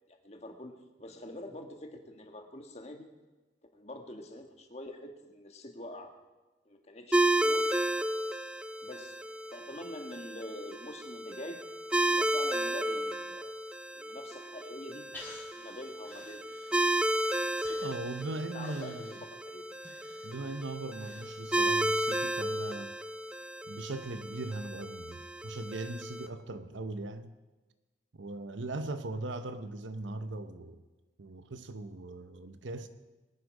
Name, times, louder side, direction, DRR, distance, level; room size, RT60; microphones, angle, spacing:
voice 1, 0.2-0.7 1.0-3.1 3.7-6.1 6.7-7.7 8.8-9.2 9.5-11.6 12.1-13.6 13.9-15.1 15.6-16.6 17.3-17.8 18.5-19.2 19.5-19.6, left 1 dB, 35° left, 4 dB, 1.7 m, -45 dB
sound 1, 7.1-26.3, right 1 dB, 5° right, 0.4 m, -33 dB
Breathing, 15.1-17.1 17.6-21.8 22.1-22.2, left 2 dB, 10° left, 3.0 m, -53 dB
voice 2, 17.8-19.2 20.2-22.9 23.7-27.3 28.1-30.8 31.2-32.9, right 2 dB, 85° right, 9 dB, 0.8 m, -39 dB
22.5 x 9.9 x 4.9 m, 1.2 s
head